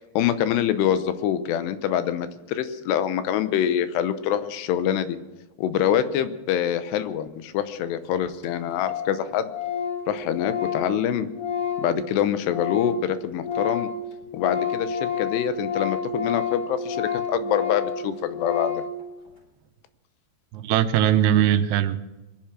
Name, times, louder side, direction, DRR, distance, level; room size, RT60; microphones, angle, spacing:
voice 1, 0.2-5.2 5.6-9.5 10.1-11.3 11.8-13.9 14.3-18.8, left 10 dB, 90° left, 11 dB, 3.0 m, -25 dB
Organ, 7.8-7.9 8.1-8.2 8.4-8.5 8.8-9.2 9.5-13.1 13.3-19.0, left 6 dB, 25° left, 3.0 m, -29 dB
voice 2, 20.5-22.0, right 11 dB, 80° right, 10 dB, 2.8 m, -20 dB
22.5 x 10.5 x 6.2 m, 1.1 s
omnidirectional pair, 4.8 m